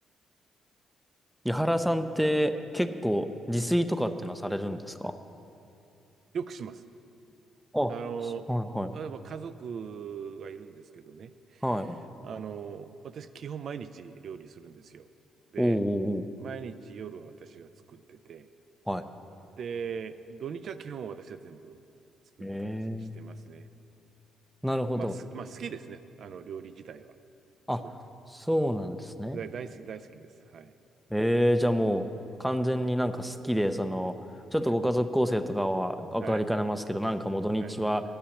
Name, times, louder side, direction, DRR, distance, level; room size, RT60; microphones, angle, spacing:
voice 1, 1.4-5.2 7.7-7.9 8.5-9.0 11.6-12.0 15.6-16.3 18.9-19.0 22.4-23.1 24.6-25.1 27.7-27.8 28.3-29.4 31.1-32.1 32.4-34.1 34.5-38.0, equal, ahead, 9 dB, 0.5 m, -28 dB
voice 2, 6.3-6.8 7.9-8.5 8.9-11.7 12.2-15.1 15.5-15.8 16.4-18.5 19.6-21.8 22.4-23.7 24.9-27.1 27.8-27.9 29.3-30.7 36.2-36.4 37.6-37.8, right 7 dB, 60° right, 11 dB, 0.4 m, -40 dB
9.8 x 8.7 x 7.1 m, 2.7 s
cardioid pair, 90°, 0 cm